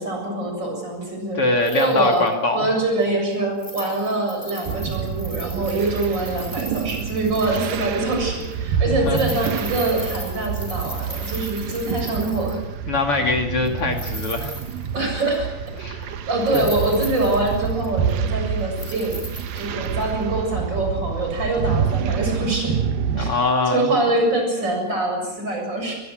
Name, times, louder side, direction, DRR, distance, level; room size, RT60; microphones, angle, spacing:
voice 1, 0.0-1.4 1.7-2.2 2.5-12.6 14.9-15.5 16.3-19.2 19.5-22.8 23.2-23.4 23.7-26.0, right 2 dB, 25° right, 2 dB, 7.9 m, -24 dB
voice 2, 1.3-2.7 8.8-9.2 11.7-11.8 12.9-14.6 15.8-16.1 16.5-16.8 23.1-23.9, left 3 dB, 40° left, 2 dB, 2.5 m, -23 dB
sound 1, 1.6-2.3 3.0-3.1 3.6-8.1 8.4-8.5 9.1-12.6 13.6-15.3 15.7-15.8 16.4-18.3 18.8-20.0 20.5-20.6, equal, 5° left, 4.6 m, -38 dB
sound 2, 4.7-23.3, right 7 dB, 65° right, 2.6 m, -27 dB
23.5 x 21.5 x 6.5 m, 1.0 s
omnidirectional pair, 4.8 m